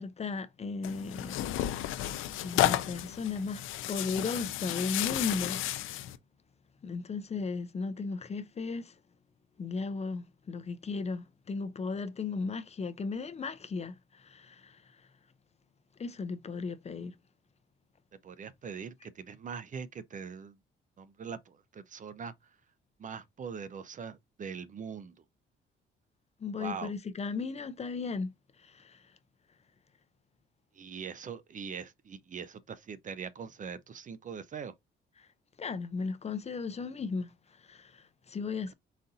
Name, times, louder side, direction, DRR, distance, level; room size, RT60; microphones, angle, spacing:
voice 1, 0.0-1.9 2.4-3.6 3.9-6.0 6.8-8.9 9.6-14.8 16.0-17.1 26.4-28.3 28.6-29.0 35.6-37.3 37.7-38.7, left 4 dB, 35° left, 0.5 m, -36 dB
Tearing, 0.8-6.2, left 13 dB, 85° left, 0.5 m, -32 dB
voice 2, 18.2-20.6 21.0-22.3 23.0-25.1 26.6-26.9 30.8-34.7, right 6 dB, 40° right, 0.5 m, -42 dB
4.1 x 2.5 x 4.0 m
cardioid pair, 90°, 20 cm